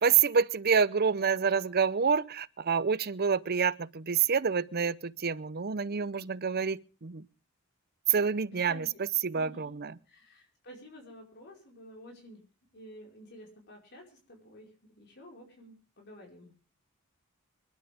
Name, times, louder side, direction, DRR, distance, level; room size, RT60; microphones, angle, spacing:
voice 1, 0.0-7.2 8.1-8.9 9.2-10.0, right 6 dB, 50° right, 0.7 m, -27 dB
voice 2, 8.4-8.9 9.3-9.8 10.1-12.4 12.7-16.5, equal, 55° left, 5.0 m, -51 dB
26.0 x 11.5 x 3.5 m
head